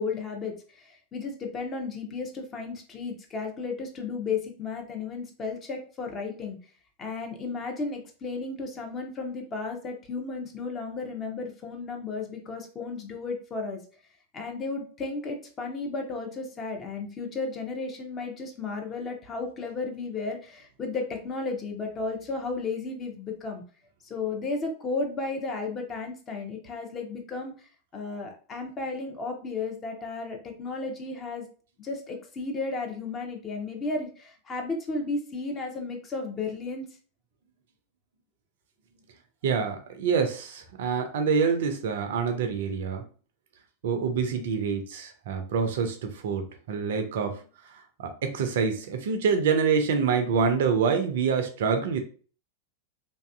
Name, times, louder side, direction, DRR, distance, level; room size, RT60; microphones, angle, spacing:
voice 1, 0.0-6.6 7.0-13.8 14.3-23.6 24.0-27.5 27.9-31.5 31.8-36.9, left 3 dB, 25° left, 3 dB, 0.6 m, -34 dB
voice 2, 39.4-43.0 43.8-47.3 48.0-52.0, right 6 dB, 55° right, 6 dB, 0.4 m, -26 dB
2.5 x 2.4 x 2.3 m, 0.40 s
figure-of-eight pair, 90°, 0 cm